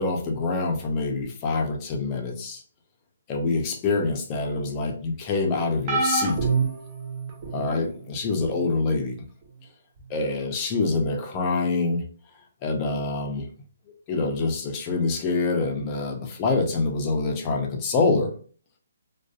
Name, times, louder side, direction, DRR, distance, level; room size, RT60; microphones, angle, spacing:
voice 1, 0.0-2.6 3.3-6.4 7.5-9.2 10.1-12.0 12.6-13.5 14.1-18.3, left 3 dB, 25° left, 2 dB, 0.5 m, -25 dB
sound 1, 5.9-7.7 8.4-8.7 10.0-10.1, right 4 dB, 35° right, 0.7 m, -26 dB
2.5 x 2.3 x 2.3 m, 0.42 s
hypercardioid pair, 150°, 0 cm